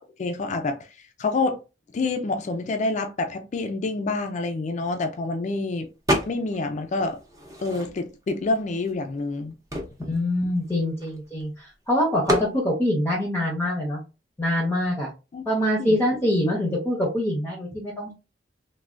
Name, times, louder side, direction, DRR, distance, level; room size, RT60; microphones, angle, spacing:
voice 1, 0.2-0.8 1.2-1.6 1.9-5.9 6.3-7.2 7.6-9.5 15.3-15.4 15.8-16.0, left 3 dB, 40° left, 0.3 m, -27 dB
sound 1, 6.1-6.7 7.0-8.2 8.9-9.0 9.2-11.4 12.3-12.6, equal, 20° right, 0.7 m, -28 dB
voice 2, 10.1-14.0 14.4-15.1 15.5-18.1, left 1 dB, 15° left, 0.6 m, -24 dB
3.3 x 2.2 x 2.4 m
head